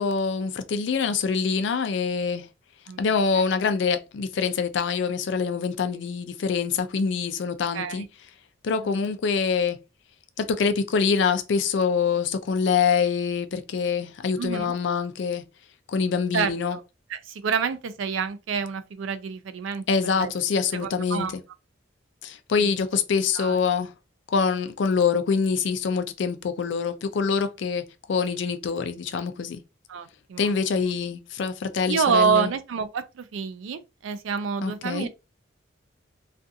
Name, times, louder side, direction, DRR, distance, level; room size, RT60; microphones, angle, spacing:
voice 1, 0.0-2.5 3.0-8.1 8.6-9.8 10.4-15.4 15.9-16.8 19.9-21.4 22.2-23.9 24.3-29.6 30.4-32.5 34.6-35.1, left 5 dB, 65° left, 0.4 m, -25 dB
voice 2, 14.4-14.7 16.3-16.8 17.1-19.8 20.2-20.3 20.7-21.3 22.6-22.7 23.4-23.6 29.9-30.8 31.9-35.1, right 6 dB, 80° right, 0.4 m, -28 dB
2.5 x 2.3 x 2.6 m
head